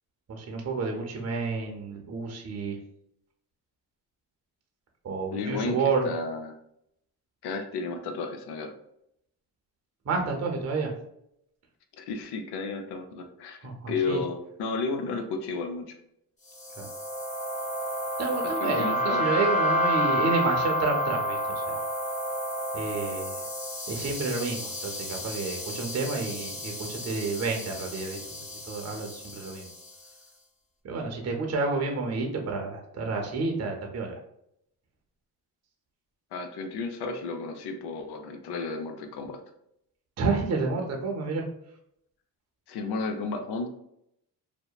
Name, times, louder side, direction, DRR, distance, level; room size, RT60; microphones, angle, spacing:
voice 1, 0.3-2.8 5.0-6.1 10.1-10.9 13.6-14.2 16.8-16.9 18.2-21.8 22.7-23.4 23.9-28.2 28.7-29.7 30.8-34.2 40.2-41.5, right 4 dB, 40° right, 2 dB, 0.6 m, -30 dB
voice 2, 5.3-6.6 7.4-8.7 11.9-13.6 13.9-16.0 18.4-19.3 36.3-39.4 42.7-43.7, left 4 dB, 70° left, 6 dB, 0.6 m, -33 dB
sound 1, 16.5-29.9, equal, 20° left, 0.5 m, -30 dB
2.8 x 2.1 x 2.2 m, 0.76 s
cardioid pair, 85°, 41 cm